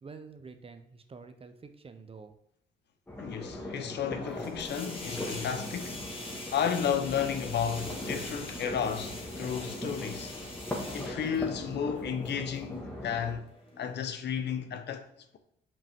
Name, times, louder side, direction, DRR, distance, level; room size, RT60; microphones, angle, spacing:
voice 1, 0.0-2.3, right 4 dB, 30° right, 0.6 m, -48 dB
sound 1, 3.1-13.4, left 1 dB, 10° left, 1.4 m, -40 dB
voice 2, 3.2-6.0 6.5-10.3 10.9-13.5 13.8-15.1, left 8 dB, 60° left, 0.7 m, -33 dB
sound 2, 4.2-14.1, left 2 dB, 25° left, 1.7 m, -45 dB
5.3 x 5.1 x 3.5 m
cardioid pair, 90°, 20 cm